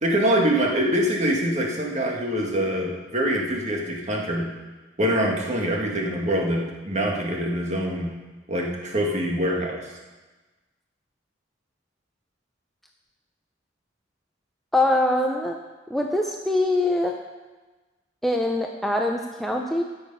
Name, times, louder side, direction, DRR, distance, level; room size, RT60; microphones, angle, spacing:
voice 1, 0.0-4.5 5.0-8.1 8.5-9.8, equal, 35° right, -1 dB, 1.9 m, -24 dB
voice 2, 14.7-15.6 15.9-17.2 18.2-19.8, left 1 dB, ahead, 1 dB, 0.6 m, -23 dB
16.0 x 6.7 x 5.5 m, 1.2 s
head